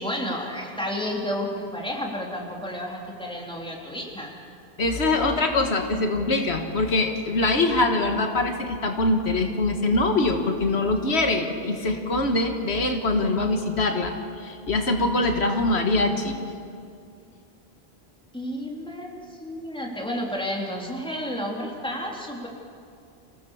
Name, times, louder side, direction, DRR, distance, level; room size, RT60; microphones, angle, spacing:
voice 1, 0.0-4.3 18.3-22.5, equal, 5° left, -1 dB, 2.9 m, -31 dB
voice 2, 4.8-16.4, left 2 dB, 90° left, 5 dB, 1.8 m, -23 dB
26.0 x 16.5 x 7.1 m, 2.4 s
omnidirectional pair, 1.1 m